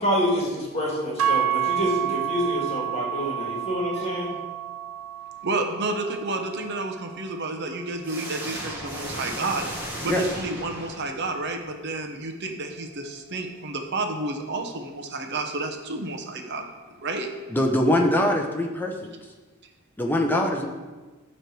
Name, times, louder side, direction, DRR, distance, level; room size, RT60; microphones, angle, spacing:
voice 1, 0.0-4.3, equal, 30° left, -4 dB, 1.9 m, -27 dB
sound 1, 1.2-9.4, right 9 dB, 65° right, 0.4 m, -31 dB
voice 2, 5.4-9.7 10.0-16.7 17.0-17.3, right 2 dB, 50° right, 4 dB, 0.8 m, -30 dB
sound 2, 8.0-11.4, right 1 dB, 10° right, 1.2 m, -35 dB
voice 3, 17.5-19.1 20.0-20.7, left 1 dB, 10° left, 1 dB, 0.7 m, -23 dB
9.6 x 3.2 x 6.0 m, 1.3 s
head